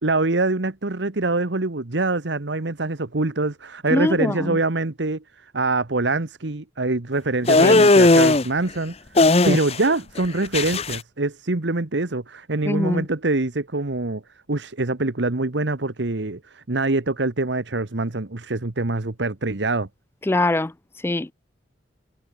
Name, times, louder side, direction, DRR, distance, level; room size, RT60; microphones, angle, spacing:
voice 1, 0.0-5.2 5.5-8.9 9.2-14.2 14.5-19.9, right 2 dB, 70° right, 1.3 m, -24 dB
voice 2, 3.9-4.6 7.6-7.8 12.6-13.1 20.3-20.7 21.0-21.3, left 2 dB, 15° left, 0.3 m, -22 dB
sound 1, 7.5-8.4 9.2-9.9 10.2-11.0, left 2 dB, 35° left, 0.8 m, -16 dB
head